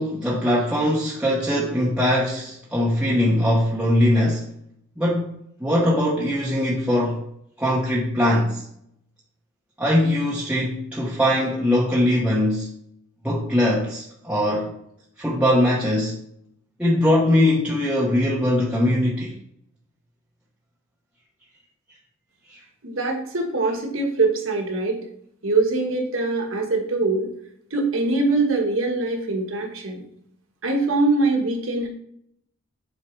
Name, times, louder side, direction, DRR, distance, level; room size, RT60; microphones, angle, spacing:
voice 1, 0.0-4.5 5.0-7.3 7.6-8.6 9.8-12.7 13.2-14.7 15.2-16.2 16.8-19.3 22.5-22.6, left 1 dB, 5° right, 0.9 m, -21 dB
voice 2, 22.8-25.0 25.4-27.3 27.7-30.0 30.6-31.9, right 3 dB, 60° right, 1.4 m, -23 dB
7.5 x 4.7 x 3.2 m
head